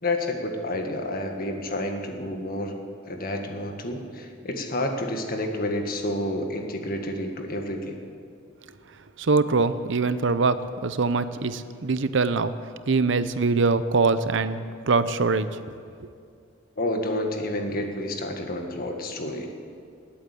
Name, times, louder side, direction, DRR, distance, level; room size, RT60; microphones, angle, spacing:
voice 1, 0.0-2.7 3.1-8.0 16.8-19.5, left 1 dB, 50° left, 3 dB, 1.8 m, -29 dB
voice 2, 9.2-12.5 12.9-15.5, right 4 dB, 70° right, 13 dB, 0.7 m, -23 dB
19.0 x 8.7 x 8.3 m, 2.4 s
head